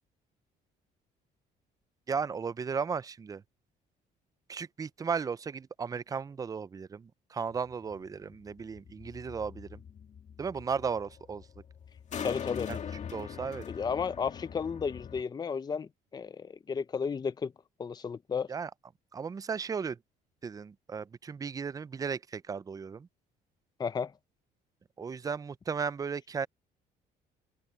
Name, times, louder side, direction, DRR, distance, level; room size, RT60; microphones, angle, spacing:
voice 1, 2.1-3.4 4.5-9.8 10.4-11.5 12.7-12.8 13.1-13.6 18.5-18.7 19.1-20.0 20.4-23.1 25.0-26.5, right 6 dB, 20° right, 0.4 m, -35 dB
sound 1, 7.5-15.2, left 8 dB, 45° left, 2.3 m, -42 dB
voice 2, 12.2-12.7 13.7-17.5 17.8-18.5 23.8-24.1, left 6 dB, 25° left, 0.6 m, -33 dB
open air
cardioid pair, 110°, 17 cm